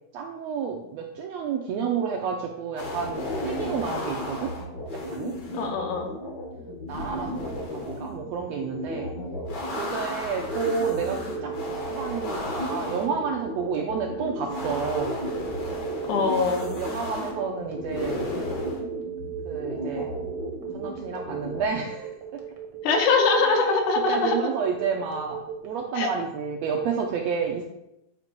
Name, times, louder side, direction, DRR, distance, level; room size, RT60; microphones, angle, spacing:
voice 1, 0.1-4.5 4.9-5.3 6.9-9.1 9.7-11.6 11.9-15.2 16.5-18.3 19.4-20.1 20.7-22.4 23.3-23.7 24.1-25.4 25.6-27.6, right 6 dB, 80° right, 1 dB, 1.5 m, -30 dB
sound 1, 2.8-21.7, left 1 dB, 60° left, 1.1 m, -34 dB
voice 2, 5.5-6.1 16.1-16.7 22.8-24.4 26.0-26.1, left 4 dB, 75° left, 3 dB, 2.3 m, -22 dB
Telephone, 10.5-25.7, right 9 dB, 60° right, 1.1 m, -37 dB
8.7 x 2.9 x 5.2 m, 0.87 s
omnidirectional pair, 3.6 m